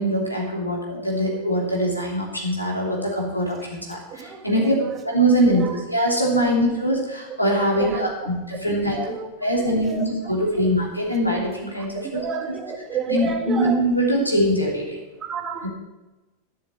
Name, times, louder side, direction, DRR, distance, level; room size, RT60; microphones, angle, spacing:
voice 1, 0.0-4.7 5.0-9.0 9.4-12.2 13.1-15.0 15.6-15.7, equal, 90° left, -2 dB, 3.0 m, -23 dB
voice 2, 4.1-4.9 5.5-5.8 6.4-6.5 7.7-8.1 8.7-9.3 9.6-10.0 11.9-13.8 15.2-15.7, right 6 dB, 25° right, 5 dB, 1.6 m, -30 dB
11.5 x 7.3 x 7.1 m, 1.1 s
figure-of-eight pair, 90°, 0 cm